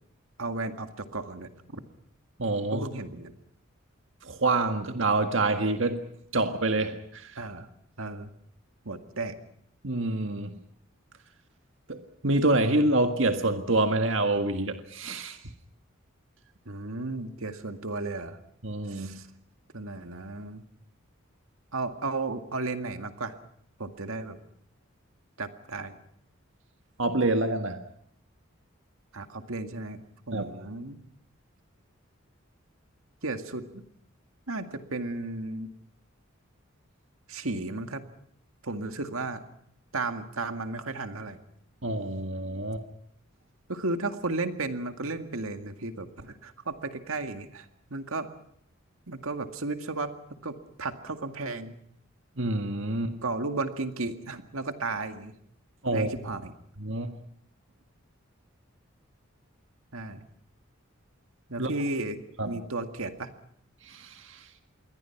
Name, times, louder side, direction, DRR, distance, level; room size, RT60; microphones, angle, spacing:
voice 1, 0.4-1.8 2.7-3.3 7.4-7.7 8.0-8.3 8.8-9.4 16.7-18.4 18.9-19.3 19.7-20.6 21.7-23.4 23.8-24.4 25.4-26.0 29.1-30.0 30.3-31.0 33.2-33.8 34.5-35.7 37.3-38.0 38.6-39.4 39.9-41.4 43.7-48.3 49.1-50.1 50.4-51.8 53.2-55.3 55.9-56.5 59.9-60.2 61.5-63.3, right 3 dB, 90° right, 7 dB, 2.1 m, -34 dB
voice 2, 2.4-2.9 4.2-6.0 6.3-7.3 9.8-10.5 11.9-12.0 12.2-15.4 18.6-19.2 27.0-27.8 30.3-30.4 41.8-42.8 52.4-53.1 55.8-56.1 56.8-57.1 61.6-61.7 62.4-62.5 63.9-64.4, right 2 dB, 65° right, 7 dB, 1.8 m, -26 dB
28.0 x 22.5 x 5.9 m, 0.68 s
head